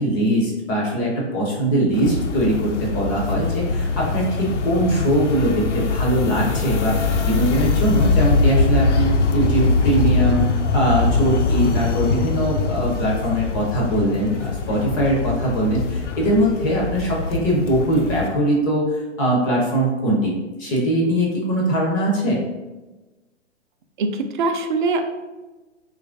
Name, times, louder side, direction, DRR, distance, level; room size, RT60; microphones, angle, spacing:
voice 1, 0.0-10.5 10.7-20.3 20.6-22.4, right 1 dB, 20° left, -2 dB, 0.4 m, -21 dB
sound 1, 1.9-18.3, left 4 dB, 85° left, 0.5 m, -22 dB
voice 2, 24.0-25.0, right 3 dB, 45° right, 6 dB, 0.4 m, -22 dB
3.0 x 2.5 x 3.5 m, 1.2 s
figure-of-eight pair, 120°, 35 cm